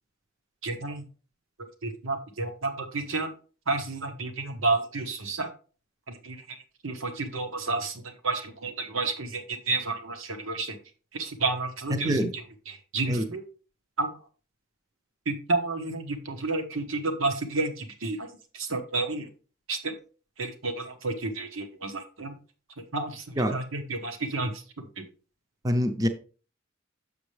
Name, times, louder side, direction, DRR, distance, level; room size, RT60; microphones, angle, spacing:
voice 1, 0.6-1.0 1.6-3.3 3.7-5.5 6.1-10.8 11.1-13.4 14.0-14.1 15.2-18.3 18.5-19.3 19.7-19.9 20.4-22.3 22.9-25.0, right 3 dB, 85° right, 1.3 m, -31 dB
voice 2, 11.9-12.3 13.1-13.3 23.4-23.5 25.6-26.1, equal, 20° right, 0.6 m, -25 dB
7.0 x 6.7 x 3.3 m
head